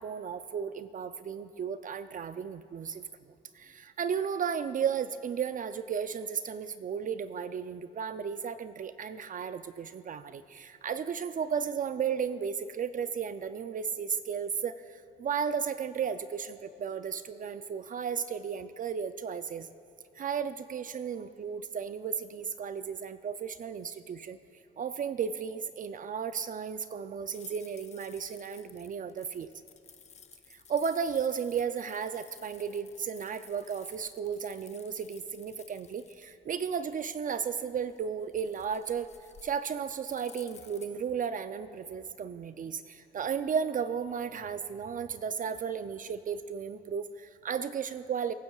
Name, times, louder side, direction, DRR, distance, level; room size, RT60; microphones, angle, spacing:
voice 1, 0.0-19.7 20.2-24.4 24.8-29.5 30.5-39.1 39.4-48.3, right 7 dB, 45° right, 12 dB, 0.4 m, -34 dB
sound 1, 27.3-40.9, left 6 dB, 35° left, 0.6 m, -55 dB
24.0 x 9.5 x 2.3 m, 2.7 s
cardioid pair, 90°, 20 cm